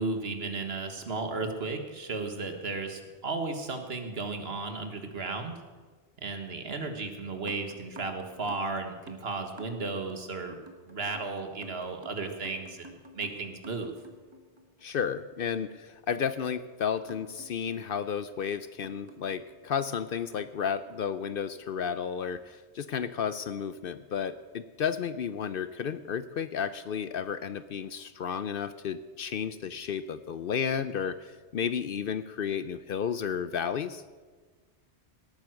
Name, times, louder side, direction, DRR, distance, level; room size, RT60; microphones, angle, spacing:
voice 1, 0.0-5.6 6.2-10.6 10.8-13.9, right 3 dB, 65° right, 6 dB, 1.7 m, -34 dB
sound 1, 7.3-15.0 17.1-20.0 21.2-22.3 22.9-23.2 23.7-23.8, right 1 dB, 25° right, 1.5 m, -52 dB
voice 2, 14.8-34.0, left 7 dB, 60° left, 13 dB, 0.7 m, -32 dB
18.0 x 9.3 x 6.3 m, 1.4 s
omnidirectional pair, 1.2 m